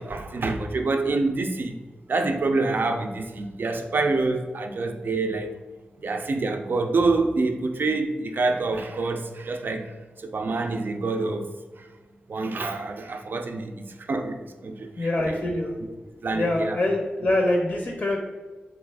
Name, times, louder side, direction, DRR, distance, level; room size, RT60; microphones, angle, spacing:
voice 1, 0.0-1.8 2.1-5.5 6.0-9.9 10.2-11.5 11.8-11.9 12.3-15.4 16.2-16.8, right 3 dB, 60° right, 6 dB, 0.4 m, -26 dB
voice 2, 15.0-15.7 16.3-18.2, left 1 dB, 55° left, 0 dB, 0.5 m, -24 dB
3.3 x 2.4 x 3.3 m, 1.3 s
cardioid pair, 60°, 4 cm